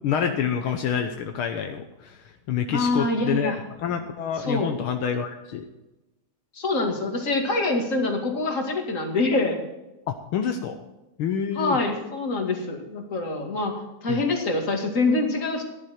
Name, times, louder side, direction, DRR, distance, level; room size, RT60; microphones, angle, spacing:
voice 1, 0.0-5.7 10.1-10.8 11.2-11.8 14.1-14.2, left 8 dB, 75° left, 5 dB, 1.8 m, -27 dB
voice 2, 2.7-3.6 4.4-4.7 6.5-9.6 11.6-15.6, left 2 dB, 35° left, 2 dB, 2.6 m, -25 dB
15.0 x 11.0 x 4.4 m, 1.0 s
omnidirectional pair, 2.4 m